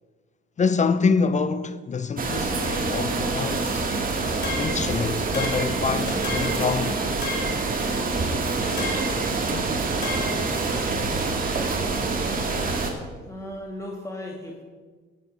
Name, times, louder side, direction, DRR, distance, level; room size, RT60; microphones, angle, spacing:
voice 1, 0.6-4.0 4.6-7.0 9.5-9.9, left 5 dB, 35° left, 0.6 m, -26 dB
sound 1, 2.2-12.9, right 3 dB, 45° right, 1.9 m, -26 dB
sound 2, 4.4-4.9 5.3-5.8 6.2-6.7 7.2-7.7 8.8-9.2 10.0-10.5, left 2 dB, 55° left, 2.9 m, -32 dB
sound 3, 6.1-6.4 8.6-9.0, left 2 dB, 80° left, 2.8 m, -37 dB
voice 2, 13.3-14.6, left 1 dB, 15° left, 1.9 m, -36 dB
14.5 x 7.6 x 5.3 m
cardioid pair, 90°, 20 cm